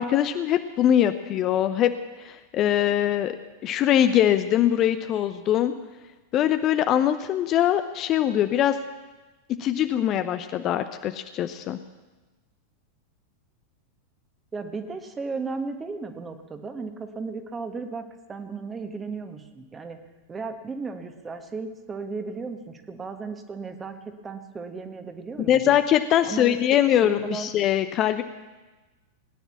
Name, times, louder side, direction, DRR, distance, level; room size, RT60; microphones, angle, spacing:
voice 1, 0.0-1.9 2.2-3.4 3.6-5.7 6.3-8.8 9.6-11.8 25.5-28.2, left 11 dB, 35° left, 10 dB, 0.7 m, -22 dB
voice 2, 14.5-20.0 20.3-25.8 26.2-26.6 27.0-27.5, right 4 dB, 15° right, 7 dB, 1.5 m, -35 dB
19.0 x 10.5 x 7.2 m, 1.2 s
figure-of-eight pair, 90°, 0 cm